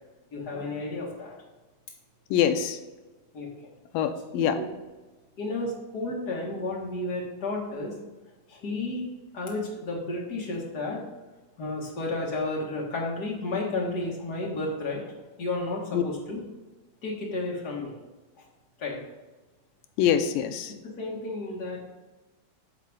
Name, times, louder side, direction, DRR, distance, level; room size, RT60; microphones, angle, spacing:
voice 1, 0.3-1.4 3.3-3.5 4.3-4.7 5.4-8.0 8.5-9.0 9.3-11.0 11.6-15.0 15.4-16.4 17.0-17.9 18.8-19.0 20.8-21.9, left 2 dB, 40° left, -3 dB, 1.5 m, -32 dB
voice 2, 2.3-2.8 3.9-4.6 15.9-16.0 20.0-20.7, left 9 dB, 80° left, 8 dB, 2.2 m, -24 dB
12.5 x 4.1 x 3.6 m, 1.2 s
omnidirectional pair, 4.0 m